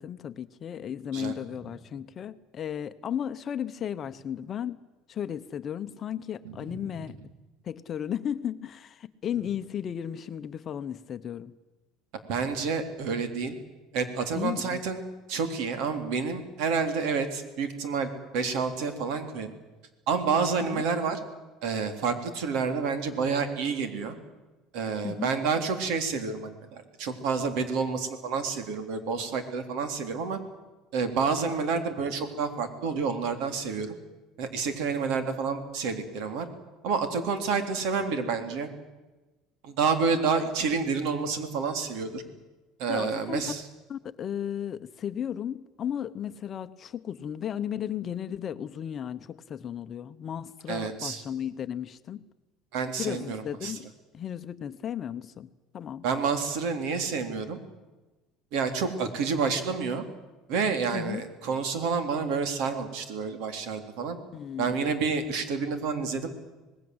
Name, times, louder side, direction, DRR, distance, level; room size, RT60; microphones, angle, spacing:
voice 1, 0.0-4.8 5.1-7.2 7.6-11.5 14.3-14.8 20.6-20.8 25.0-25.3 42.9-43.5 43.9-52.2 53.0-53.9 54.1-56.0 60.9-61.2 64.3-64.9, left 9 dB, 30° left, 0.9 m, -35 dB
voice 2, 6.4-7.0 12.3-13.6 13.9-15.0 15.3-19.5 20.1-21.2 21.6-24.2 24.7-30.4 30.9-34.0 34.4-36.5 36.8-38.7 39.6-42.2 42.8-43.6 50.7-51.2 52.7-53.8 56.0-57.6 58.5-60.0 60.5-64.2 64.6-66.3, right 5 dB, 65° right, 3.6 m, -29 dB
26.0 x 20.0 x 8.0 m
cardioid pair, 150°, 0 cm